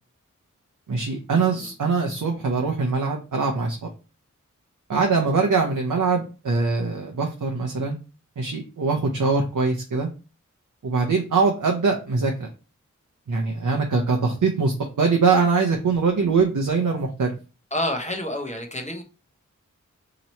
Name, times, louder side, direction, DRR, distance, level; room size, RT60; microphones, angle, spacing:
voice 1, 0.9-3.9 4.9-8.0 8.4-10.1 10.8-12.5 13.3-17.3, right 4 dB, 80° right, 1 dB, 0.6 m, -22 dB
voice 2, 17.7-19.0, left 1 dB, 20° left, 2 dB, 0.8 m, -28 dB
2.9 x 2.8 x 4.2 m, 0.33 s
wide cardioid pair, 50°, 31 cm